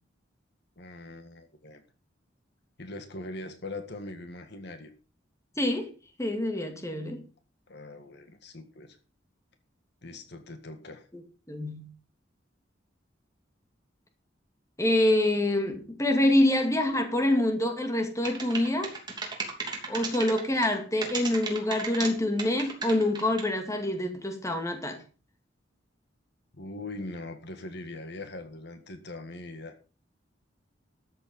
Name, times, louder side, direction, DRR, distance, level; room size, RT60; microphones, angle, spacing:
voice 1, 0.8-1.8 2.8-4.9 7.7-9.0 10.0-11.1 26.5-29.7, left 2 dB, 65° left, 1.7 m, -41 dB
voice 2, 5.6-5.9 6.2-7.2 11.5-11.9 14.8-18.9 19.9-25.0, left 1 dB, 15° left, 2.2 m, -26 dB
sound 1, 18.2-20.8 21.0-22.1 22.4-23.5, right 4 dB, 25° right, 3.0 m, -34 dB
13.0 x 7.8 x 5.4 m
head